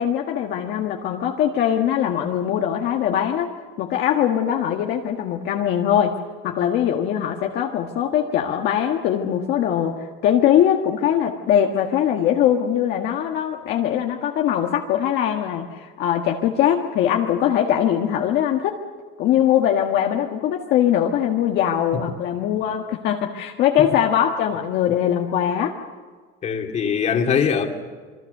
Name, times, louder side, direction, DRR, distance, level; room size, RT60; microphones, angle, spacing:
voice 1, 0.0-3.5 3.8-6.2 6.4-18.8 19.2-25.7, left 10 dB, 55° left, 2 dB, 1.7 m, -21 dB
voice 2, 26.4-27.7, left 7 dB, 35° left, 4 dB, 2.5 m, -22 dB
27.0 x 23.0 x 6.7 m, 1.5 s
cardioid pair, 160°, 21 cm